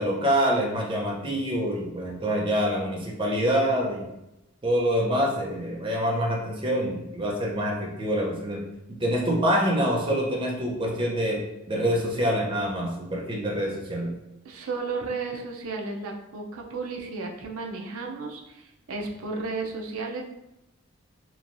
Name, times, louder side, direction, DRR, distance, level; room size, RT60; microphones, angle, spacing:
voice 1, 0.0-4.1 4.6-8.6 9.0-11.4 11.7-14.1, equal, 25° right, -2 dB, 0.5 m, -26 dB
voice 2, 14.4-20.2, right 3 dB, 75° right, 1 dB, 0.5 m, -33 dB
3.1 x 2.2 x 2.5 m, 0.91 s
head